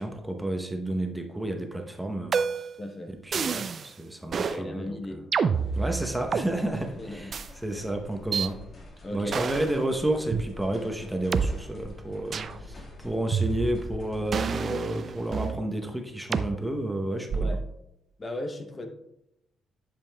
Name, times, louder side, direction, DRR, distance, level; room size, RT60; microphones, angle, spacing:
voice 1, 0.0-2.7 3.1-5.2 5.7-7.4 7.6-8.6 9.1-17.6, right 1 dB, 5° right, 3 dB, 0.8 m, -31 dB
sound 1, 2.3-2.8 3.3-3.9 4.3-4.6 5.3-6.5 7.3-7.5 8.3-8.5 9.3-9.7 10.3-10.4 11.3-11.5 12.3-12.6 13.3-13.9 14.3-15.6 16.3-16.5 17.3-17.7, right 6 dB, 50° right, 0.3 m, -28 dB
voice 2, 2.8-3.1 4.4-5.3 7.0-7.4 9.0-9.4 17.3-17.6 18.2-18.9, left 1 dB, 30° left, 5 dB, 0.7 m, -36 dB
sound 2, 5.5-14.3, left 2 dB, 45° left, 1.7 m, -46 dB
10.5 x 5.2 x 2.2 m, 0.84 s
cardioid pair, 90°, 0 cm